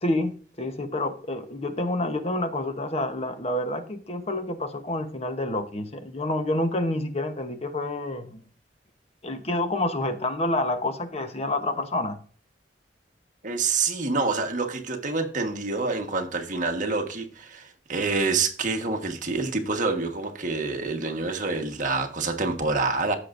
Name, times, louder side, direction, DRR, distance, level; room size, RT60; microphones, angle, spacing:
voice 1, 0.0-8.4 9.2-12.2, left 1 dB, 35° left, 1.0 m, -28 dB
voice 2, 13.4-23.2, right 3 dB, 45° right, 1.4 m, -27 dB
15.0 x 6.5 x 2.6 m
head